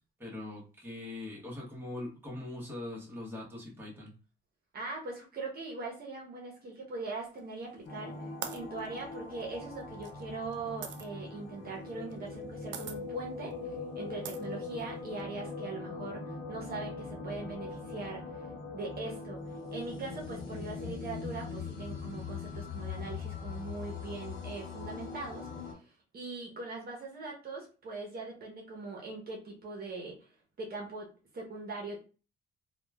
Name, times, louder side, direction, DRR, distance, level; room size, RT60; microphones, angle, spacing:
voice 1, 0.2-4.1, left 2 dB, 10° right, -4 dB, 1.0 m, -41 dB
voice 2, 4.7-30.3 30.6-31.1 31.3-32.0, right 3 dB, 50° right, -1 dB, 0.8 m, -41 dB
sound 1, 7.4-7.9 8.4-11.1 12.1-12.4 12.7-13.0 13.5-13.6 14.2-15.2, right 8 dB, 65° right, 0.4 m, -43 dB
sound 2, 7.8-25.7, left 4 dB, 65° left, 1.0 m, -41 dB
2.9 x 2.2 x 2.2 m, 0.36 s
cardioid pair, 90°, 20 cm